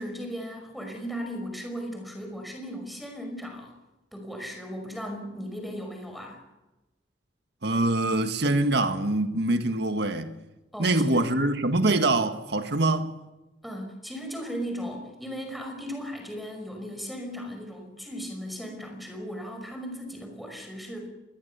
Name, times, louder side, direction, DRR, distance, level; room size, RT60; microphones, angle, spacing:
voice 1, 0.0-3.8 4.1-6.4 10.7-11.2 13.6-21.1, equal, ahead, 5.6 m, -37 dB
voice 2, 7.6-10.4 10.8-13.1, right 2 dB, 65° right, 1.8 m, -24 dB
26.5 x 21.5 x 7.0 m
head